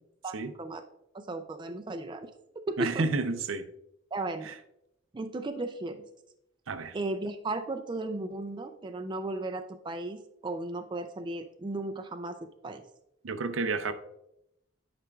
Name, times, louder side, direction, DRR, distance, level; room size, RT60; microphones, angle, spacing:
voice 1, 0.2-0.8 1.1-3.0 4.1-4.5 5.1-6.0 6.9-12.8, right 2 dB, 25° right, 0.4 m, -35 dB
voice 2, 2.8-3.7 4.5-4.6 6.7-7.0 13.2-13.9, right 3 dB, 80° right, 0.5 m, -30 dB
10.0 x 4.9 x 2.3 m
head